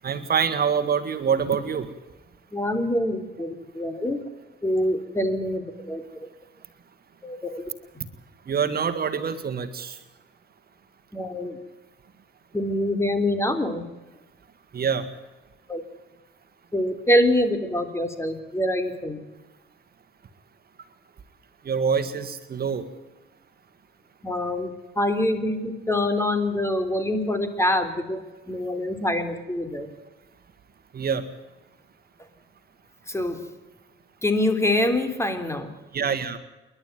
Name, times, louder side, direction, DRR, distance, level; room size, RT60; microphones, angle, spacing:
voice 1, 0.0-1.9 8.5-10.0 14.7-15.1 21.6-22.8 30.9-31.3 35.9-36.4, right 6 dB, 50° right, 10 dB, 1.7 m, -25 dB
voice 2, 2.5-4.2 4.6-6.3 7.2-7.6 11.1-11.6 12.5-13.9 15.7-15.8 16.7-19.2 24.2-28.2 28.5-29.9 33.1-33.4 34.2-35.7, left 1 dB, 15° left, 8 dB, 3.5 m, -25 dB
28.5 x 11.5 x 9.3 m, 1.1 s
cardioid pair, 90°, 20 cm